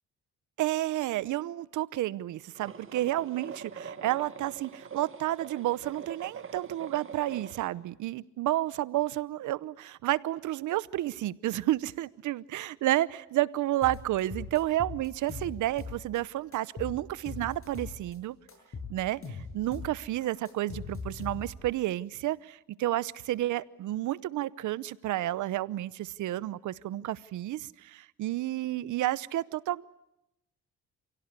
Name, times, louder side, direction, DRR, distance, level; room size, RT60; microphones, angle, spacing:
voice 1, 0.6-18.4 18.9-29.8, right 15 dB, 80° right, 20 dB, 0.9 m, -31 dB
sound 1, 2.5-7.7, right 6 dB, 45° right, 2.2 m, -43 dB
sound 2, 13.8-16.2 16.5-18.2 18.5-21.7, left 4 dB, 45° left, 7.9 m, -41 dB
29.0 x 17.0 x 9.6 m, 0.87 s
cardioid pair, 90°, 30 cm